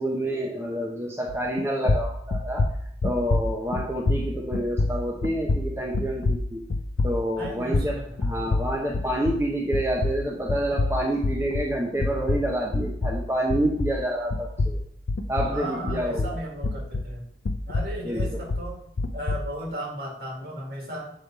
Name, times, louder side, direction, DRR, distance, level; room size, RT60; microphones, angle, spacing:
voice 1, 0.0-2.7 3.0-6.6 7.0-7.9 8.2-14.8 15.3-16.4 18.0-18.4, right 1 dB, 15° right, -2 dB, 0.6 m, -28 dB
sound 1, 1.3-1.6 1.8-9.5 9.7-14.0 14.3-17.2 17.4-19.5, left 2 dB, 70° left, 0.5 m, -27 dB
voice 2, 7.4-8.5 15.4-17.2 17.7-18.9 19.1-21.1, right 1 dB, 60° right, -2 dB, 1.8 m, -35 dB
6.6 x 3.4 x 4.4 m, 0.69 s
head